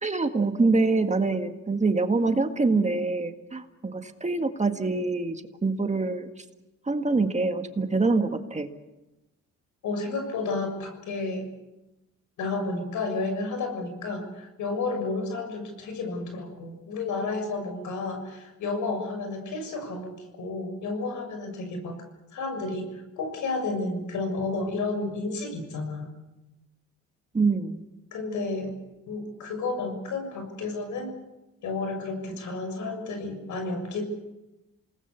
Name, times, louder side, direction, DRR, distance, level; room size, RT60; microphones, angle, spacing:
voice 1, 0.0-6.3 6.9-8.7 27.3-27.8, right 3 dB, 25° right, 6 dB, 1.8 m, -25 dB
voice 2, 9.8-11.5 12.4-22.0 22.3-26.1 28.1-28.7 29.1-31.1 31.6-34.0, left 3 dB, 75° left, 6 dB, 6.7 m, -31 dB
28.5 x 19.5 x 6.9 m, 0.99 s
cardioid pair, 90°, 30 cm